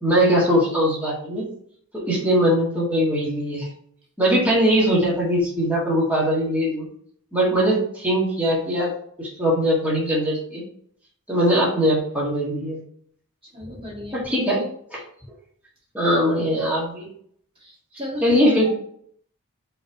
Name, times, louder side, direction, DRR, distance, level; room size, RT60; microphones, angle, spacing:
voice 1, 0.0-1.4 1.9-3.7 4.2-6.9 7.3-8.9 9.2-10.6 11.3-12.8 14.1-14.6 14.9-15.0 15.9-17.1 18.2-18.7, equal, 5° right, -6 dB, 1.8 m, -21 dB
voice 2, 13.5-14.3 17.6-18.4 18.6-18.7, left 1 dB, 25° right, -3 dB, 1.7 m, -34 dB
6.1 x 3.2 x 4.7 m, 0.63 s
head